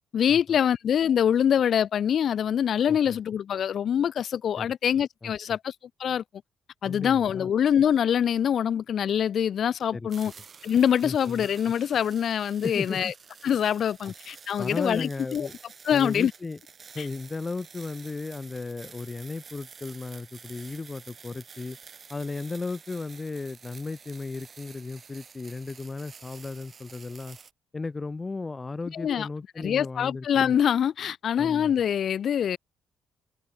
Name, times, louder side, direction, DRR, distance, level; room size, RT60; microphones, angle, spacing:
voice 1, 0.1-5.7 6.0-6.2 6.8-10.3 10.6-13.1 13.4-15.5 15.8-16.3 17.0-17.1 28.9-29.3 29.6-32.6, left 9 dB, 60° left, 0.6 m, -24 dB
voice 2, 2.9-3.2 4.6-4.7 5.2-5.3 6.8-7.5 9.9-10.1 11.0-11.4 12.6-13.1 14.0-14.1 14.6-15.5 15.9-16.6 16.9-21.8 22.1-27.4 27.7-30.5 31.4-31.7, left 3 dB, 25° left, 1.4 m, -35 dB
sound 1, 10.1-27.5, right 6 dB, 40° right, 7.8 m, -49 dB
cardioid pair, 90°, 0 cm